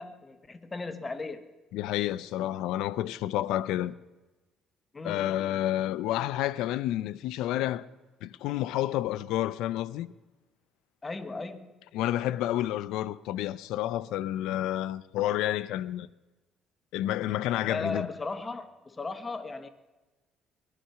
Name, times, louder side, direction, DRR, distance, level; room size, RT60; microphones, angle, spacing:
voice 1, 0.0-1.5 4.9-5.3 11.0-11.8 17.7-19.7, left 3 dB, 20° left, 1.0 m, -37 dB
voice 2, 1.7-3.9 5.0-7.9 8.2-10.1 11.9-16.1 16.9-18.1, left 13 dB, 85° left, 0.5 m, -30 dB
19.5 x 11.5 x 5.8 m
cardioid pair, 125°, 0 cm